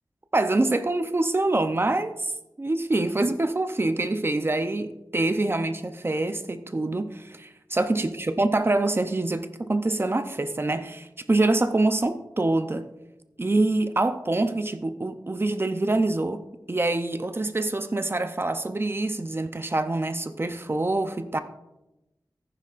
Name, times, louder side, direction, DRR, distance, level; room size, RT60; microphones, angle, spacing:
voice 1, 0.3-2.3 2.6-12.9 13.4-16.4 16.7-21.4, right 2 dB, 30° right, 9 dB, 0.6 m, -25 dB
14.5 x 9.9 x 2.5 m, 0.95 s
wide cardioid pair, 90°, 7 cm